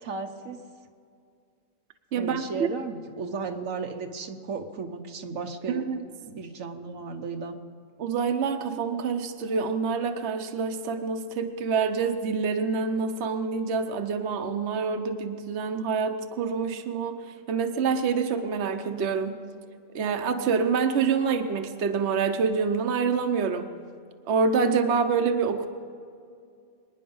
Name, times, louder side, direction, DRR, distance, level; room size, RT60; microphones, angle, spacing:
voice 1, 0.0-0.6 2.1-5.8 6.2-7.6, right 4 dB, 85° right, 5 dB, 1.5 m, -35 dB
voice 2, 2.1-2.7 5.7-6.0 8.0-17.2 17.5-19.4 19.9-23.7 24.3-25.7, right 5 dB, 60° right, 7 dB, 1.1 m, -26 dB
24.5 x 10.0 x 5.4 m, 2.3 s
omnidirectional pair, 1.4 m